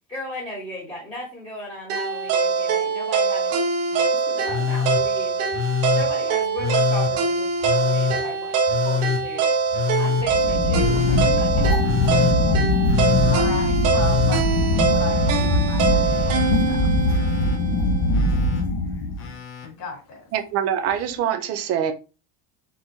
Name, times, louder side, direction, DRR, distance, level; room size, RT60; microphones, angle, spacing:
voice 1, 0.1-3.6 3.9-8.5 8.8-9.5 10.0-11.7, equal, 10° left, 1.0 m, -36 dB
sound 1, 1.9-18.0, right 5 dB, 70° right, 1.2 m, -23 dB
Telephone, 4.5-5.0 5.5-6.1 6.6-7.1 7.6-8.2 8.7-9.2 9.7-10.3 10.8-11.3 11.8-12.4 12.9-13.4 13.9-15.5 15.8-16.5 17.1-17.6 18.1-18.6 19.2-19.7 20.9-21.0, left 8 dB, 30° left, 0.5 m, -26 dB
sound 2, 10.2-19.3, left 2 dB, 75° left, 1.1 m, -22 dB
voice 2, 13.1-16.2 16.7-17.0 19.6-20.2, left 4 dB, 55° left, 2.4 m, -36 dB
voice 3, 20.3-21.9, right 9 dB, 35° right, 0.4 m, -24 dB
4.4 x 3.6 x 2.7 m
cardioid pair, 165°, 48 cm